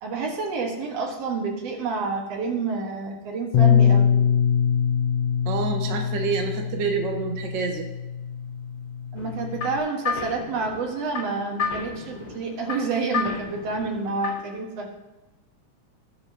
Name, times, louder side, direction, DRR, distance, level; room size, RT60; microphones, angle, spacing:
voice 1, 0.0-4.1 9.1-14.9, right 4 dB, 55° right, 1 dB, 2.3 m, -29 dB
Bass guitar, 3.5-9.8, left 8 dB, 80° left, 1.5 m, -23 dB
voice 2, 5.4-7.9, right 5 dB, 80° right, 3 dB, 1.0 m, -27 dB
sound 1, 9.2-14.6, left 5 dB, 45° left, 2.5 m, -33 dB
19.0 x 6.7 x 2.8 m, 1.1 s
omnidirectional pair, 3.8 m